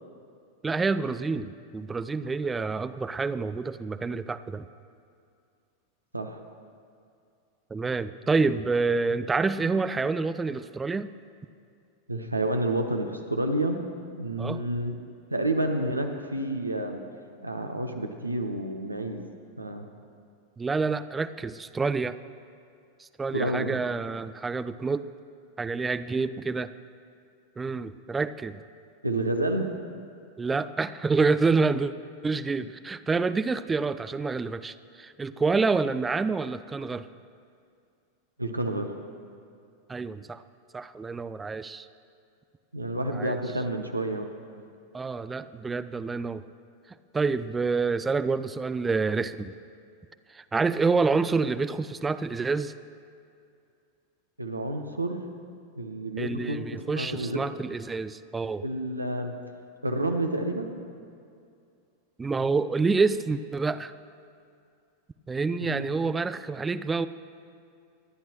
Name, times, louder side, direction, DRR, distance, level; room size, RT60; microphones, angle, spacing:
voice 1, 0.6-4.6 7.7-11.1 14.4-14.6 20.6-22.2 23.0-25.1 25.6-26.7 27.6-28.6 30.4-31.9 32.2-37.1 39.9-40.4 40.7-41.9 43.1-43.4 44.9-46.4 47.1-49.5 50.3-52.7 56.2-58.6 62.2-63.9 65.3-67.1, right 4 dB, 15° right, 14 dB, 0.4 m, -27 dB
voice 2, 12.1-13.8 14.1-14.9 15.3-17.0 17.4-19.2 19.6-19.9 23.3-23.8 29.0-29.7 38.4-38.9 42.7-44.3 54.4-55.2 55.8-56.6 56.9-57.4 58.6-59.3 59.8-60.8 65.6-65.9, right 1 dB, 85° right, 5 dB, 1.0 m, -29 dB
24.0 x 10.5 x 3.1 m, 2.4 s
figure-of-eight pair, 90°, 0 cm